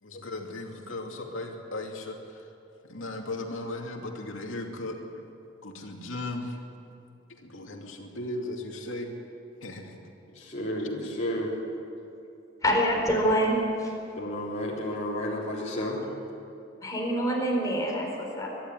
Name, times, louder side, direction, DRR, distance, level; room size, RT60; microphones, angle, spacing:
voice 1, 0.0-2.5 2.8-5.2 5.6-6.6 7.4-9.1 9.6-10.0 10.8-10.9, left 2 dB, 80° left, 2 dB, 2.5 m, -37 dB
voice 2, 10.4-11.6 14.2-16.0, left 1 dB, 35° left, -5 dB, 3.7 m, -31 dB
voice 3, 12.6-13.9 16.8-18.5, equal, 20° left, -1 dB, 4.3 m, -26 dB
23.5 x 12.0 x 9.6 m, 2.7 s
head